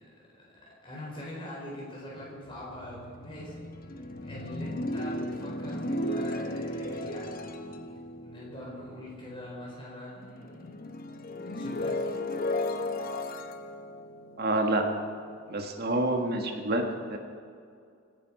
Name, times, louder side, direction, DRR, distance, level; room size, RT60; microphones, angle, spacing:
voice 1, 0.8-3.6 3.8-7.9 8.2-10.7 11.5-12.1, left 1 dB, 25° left, -5 dB, 4.2 m, -43 dB
sound 1, 2.1-9.8 10.2-15.3, left 1 dB, 45° left, 0.9 m, -35 dB
voice 2, 14.4-14.8 15.5-16.8 17.1-17.2, right 2 dB, 50° right, 3 dB, 1.5 m, -27 dB
26.0 x 10.5 x 4.8 m, 2.3 s
head